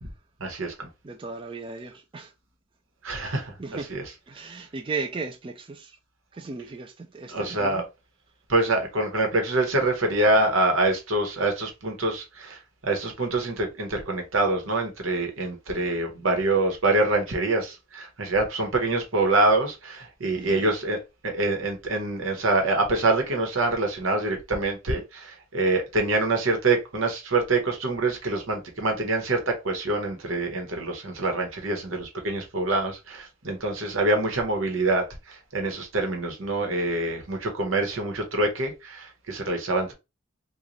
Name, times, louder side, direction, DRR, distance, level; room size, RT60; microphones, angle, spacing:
voice 1, 0.4-0.9 3.0-4.0 7.3-7.8 8.5-39.9, right 2 dB, 85° right, 1.1 m, -25 dB
voice 2, 1.0-2.3 3.6-3.9 4.3-6.0 6.3-7.8 20.4-20.7, right 4 dB, 25° right, 0.4 m, -36 dB
3.1 x 2.4 x 3.8 m
head